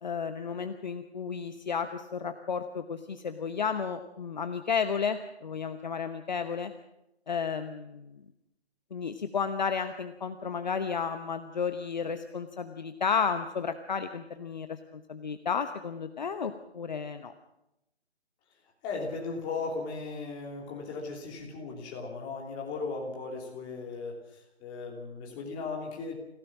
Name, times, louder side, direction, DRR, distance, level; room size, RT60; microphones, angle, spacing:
voice 1, 0.0-6.7 7.3-8.2 8.9-17.3, left 6 dB, 45° left, 9 dB, 1.0 m, -32 dB
voice 2, 18.8-24.2 24.6-26.2, left 4 dB, 15° left, 0 dB, 3.0 m, -37 dB
26.5 x 16.5 x 6.1 m, 0.88 s
figure-of-eight pair, 150°, 32 cm